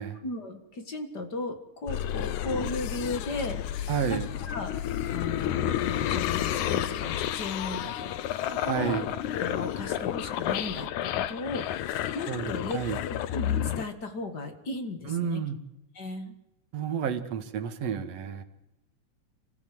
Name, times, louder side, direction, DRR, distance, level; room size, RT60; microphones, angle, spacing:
voice 1, 0.2-4.2 4.5-4.7 5.1-8.2 8.5-9.1 9.3-12.8 13.0-15.4 15.9-16.3, left 2 dB, 40° left, 7 dB, 2.2 m, -36 dB
sound 1, 1.9-13.9, left 11 dB, 85° left, 2.4 m, -31 dB
voice 2, 3.9-4.3 8.7-9.0 12.3-13.0 15.1-15.6 16.7-18.4, right 8 dB, 60° right, 7 dB, 2.7 m, -30 dB
26.5 x 14.5 x 7.9 m, 0.92 s
omnidirectional pair, 3.3 m